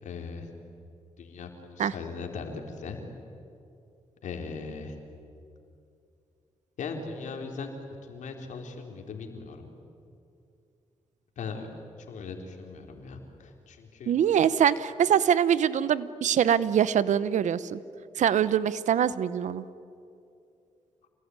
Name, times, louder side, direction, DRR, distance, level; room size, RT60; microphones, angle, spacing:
voice 1, 0.0-0.5 1.2-3.0 4.2-5.0 6.8-7.7 8.1-9.8 11.4-11.7 12.1-14.1, left 4 dB, 75° left, 4 dB, 3.8 m, -39 dB
voice 2, 14.1-17.8 18.2-19.6, right 9 dB, 75° right, 17 dB, 0.9 m, -24 dB
28.5 x 20.0 x 9.8 m, 2.6 s
cardioid pair, 60°, 13 cm